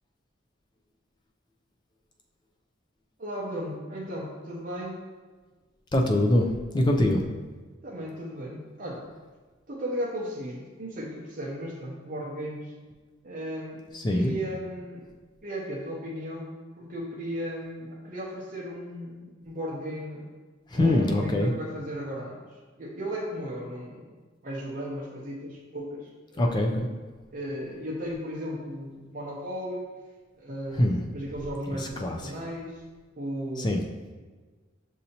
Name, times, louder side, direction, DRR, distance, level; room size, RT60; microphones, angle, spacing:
voice 1, 3.2-5.1 7.8-9.1 9.7-12.7 13.2-13.8 14.1-15.0 15.4-20.3 20.7-22.4 22.8-24.1 24.4-26.6 27.3-29.8 30.4-32.8 33.1-33.8 34.2-34.3, equal, 45° right, -4 dB, 0.7 m, -35 dB
voice 2, 5.9-7.2 13.9-14.3 20.7-21.5 26.4-26.9 30.8-31.0 32.0-32.2 33.6-33.8, left 1 dB, 20° left, 2 dB, 0.4 m, -23 dB
6.3 x 2.7 x 2.8 m, 1.4 s
head